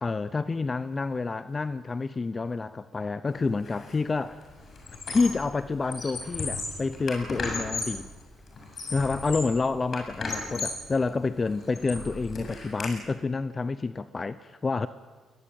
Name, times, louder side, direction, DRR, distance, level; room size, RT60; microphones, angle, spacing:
voice 1, 0.0-4.5 5.1-8.1 8.9-14.9, left 4 dB, 30° left, 14 dB, 0.7 m, -28 dB
Squeak, 3.7-3.9 4.3-5.5 5.8-8.1 8.5-9.6 9.9-10.9 11.4-12.9, left 3 dB, 50° left, 7.6 m, -35 dB
21.5 x 21.0 x 8.9 m, 1.4 s
cardioid pair, 90°, 0 cm